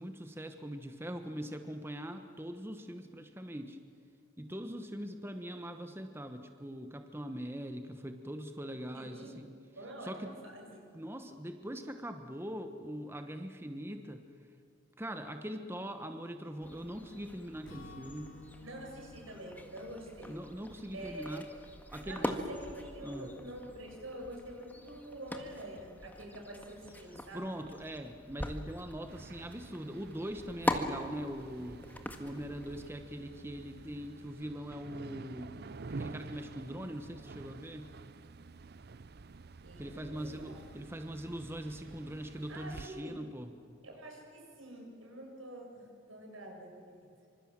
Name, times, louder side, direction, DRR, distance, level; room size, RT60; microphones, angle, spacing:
voice 1, 0.0-3.8 4.4-9.5 10.0-10.3 10.9-14.2 15.0-18.3 20.3-21.4 21.9-22.4 23.0-23.3 27.3-31.8 32.2-35.6 35.9-37.9 39.8-43.5, equal, 10° right, 7 dB, 1.2 m, -42 dB
voice 2, 8.9-9.4 9.8-10.8 18.6-20.4 20.9-21.4 22.0-27.4 39.6-40.6 42.5-43.1 43.8-47.0, right 1 dB, 85° right, 1 dB, 7.8 m, -46 dB
sound 1, 16.6-32.9, left 1 dB, 10° left, 1.8 m, -42 dB
Acoustic guitar / Strum, 17.7-21.6, left 2 dB, 75° left, 4.2 m, -55 dB
sound 2, 29.1-42.9, right 3 dB, 50° right, 0.6 m, -49 dB
26.5 x 25.5 x 7.5 m, 2.5 s
head